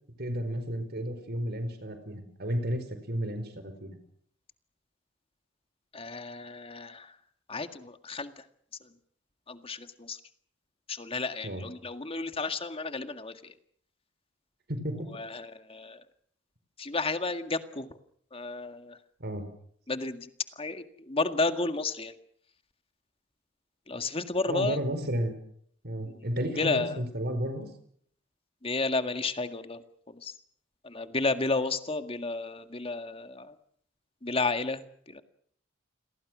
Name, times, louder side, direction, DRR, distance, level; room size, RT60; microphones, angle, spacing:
voice 1, 0.2-4.0 11.4-11.7 14.7-15.1 15.4-15.5 19.2-19.4 24.5-25.4 25.8-27.7, equal, 55° right, 9 dB, 4.7 m, -32 dB
voice 2, 5.9-7.1 7.5-8.3 9.5-10.2 10.9-13.5 15.2-16.0 16.8-17.9 18.3-19.0 19.9-20.3 20.6-22.1 23.9-24.8 26.6-26.9 28.6-29.8 30.1-30.3 30.8-33.5 34.2-34.8 35.1-35.2, left 3 dB, 30° left, 9 dB, 1.9 m, -32 dB
29.5 x 22.0 x 6.2 m, 0.64 s
head